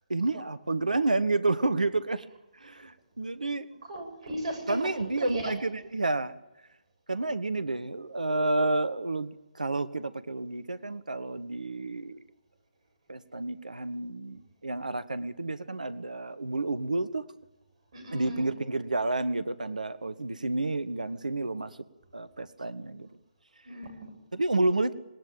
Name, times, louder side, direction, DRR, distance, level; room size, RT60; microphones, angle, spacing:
voice 1, 0.1-2.2 2.5-3.7 4.7-6.4 7.1-12.2 13.1-17.2 18.1-21.8 22.1-23.1 24.3-24.9, right 2 dB, 75° right, 15 dB, 1.2 m, -30 dB
voice 2, 3.8-5.5 17.9-18.5 23.6-24.1, right 1 dB, 55° right, 6 dB, 7.9 m, -36 dB
26.0 x 19.0 x 8.9 m, 1.1 s
figure-of-eight pair, 140°, 4 cm